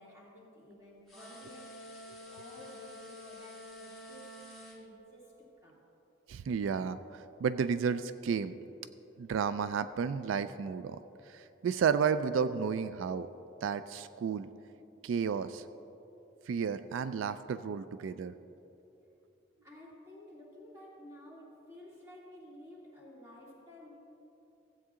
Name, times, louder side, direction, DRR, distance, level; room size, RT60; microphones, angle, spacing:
voice 1, 0.0-4.3 4.6-5.8 19.6-23.9, left 1 dB, 15° right, -6 dB, 2.6 m, -53 dB
sound 1, 1.1-4.8, left 1 dB, ahead, 1.6 m, -49 dB
voice 2, 6.3-8.5 9.2-11.0 11.3-13.3 13.6-14.5 15.0-15.6 16.5-18.3, right 6 dB, 85° right, 13 dB, 0.3 m, -32 dB
16.0 x 8.3 x 3.7 m, 3.0 s
head